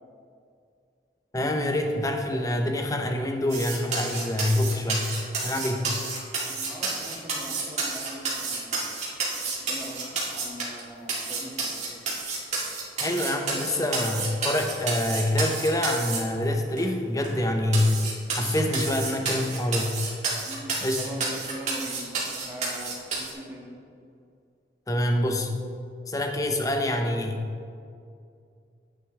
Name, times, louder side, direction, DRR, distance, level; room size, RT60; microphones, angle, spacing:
voice 1, 1.3-5.1 5.4-5.9 13.0-18.0 18.3-19.9 20.8-21.0 24.9-25.5 26.1-27.4, left 1 dB, 20° left, 4 dB, 0.8 m, -26 dB
sound 1, 3.5-10.8 11.1-16.2 16.8-16.9 17.2-17.3 17.7-23.3, right 4 dB, 40° right, 2.1 m, -30 dB
voice 2, 6.5-8.8 9.4-10.0 10.3-11.9 20.5-23.7, right 1 dB, 15° right, -5 dB, 1.9 m, -41 dB
9.9 x 9.1 x 3.4 m, 2.4 s
head